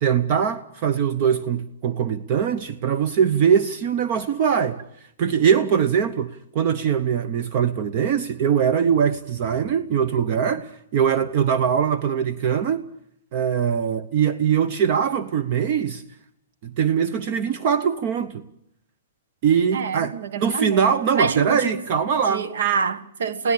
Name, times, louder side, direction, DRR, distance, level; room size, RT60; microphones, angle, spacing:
voice 1, 0.0-4.8 5.2-12.8 13.3-16.0 16.6-18.4 19.4-22.5, right 7 dB, 35° right, 0.8 m, -22 dB
voice 2, 19.7-21.8 22.2-23.5, right 5 dB, 80° right, 1.2 m, -26 dB
23.5 x 17.0 x 8.6 m
hypercardioid pair, 160°, 0 cm